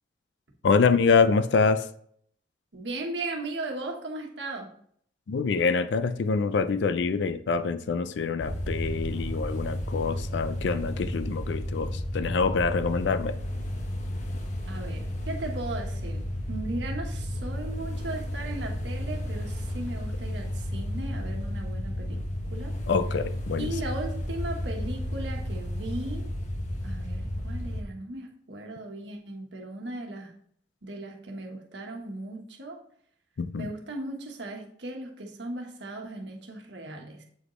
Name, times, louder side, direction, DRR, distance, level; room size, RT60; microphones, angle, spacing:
voice 1, 0.6-1.9 5.3-13.4 22.9-23.7 33.4-33.7, left 5 dB, 80° left, 0.4 m, -25 dB
voice 2, 2.7-4.7 14.7-16.2 16.5-22.2 22.5-22.7 23.6-26.3 26.8-30.3 30.8-32.8 33.6-37.2, right 2 dB, 80° right, 1.3 m, -37 dB
sound 1, 8.4-27.8, left 1 dB, 40° left, 1.0 m, -32 dB
8.0 x 5.0 x 3.1 m
head